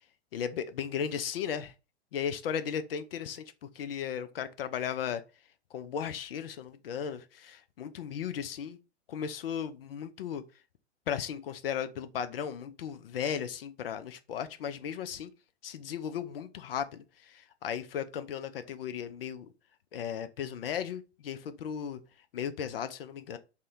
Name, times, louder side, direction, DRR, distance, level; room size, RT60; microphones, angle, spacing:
voice 1, 0.3-1.7 2.1-5.2 5.7-8.8 9.1-10.4 11.1-15.3 15.6-19.5 19.9-22.0 22.3-23.4, left 8 dB, 55° left, 0.5 m, -36 dB
2.7 x 2.1 x 4.0 m
figure-of-eight pair, 105°, 34 cm